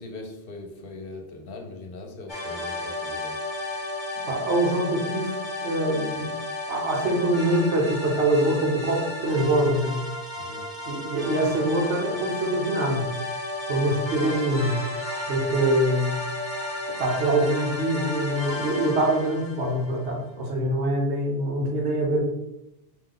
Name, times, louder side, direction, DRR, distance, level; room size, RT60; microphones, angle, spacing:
voice 1, 0.0-3.4 10.3-10.7, left 2 dB, 60° left, 3 dB, 0.8 m, -40 dB
sound 1, 2.3-20.1, left 2 dB, 25° left, 0.9 m, -33 dB
voice 2, 4.3-5.4 5.6-6.3 6.7-9.9 10.9-13.0 13.7-14.8 15.3-16.1 17.0-22.3, right 1 dB, 75° right, -1 dB, 1.1 m, -24 dB
4.8 x 2.3 x 3.8 m, 0.87 s
omnidirectional pair, 1.2 m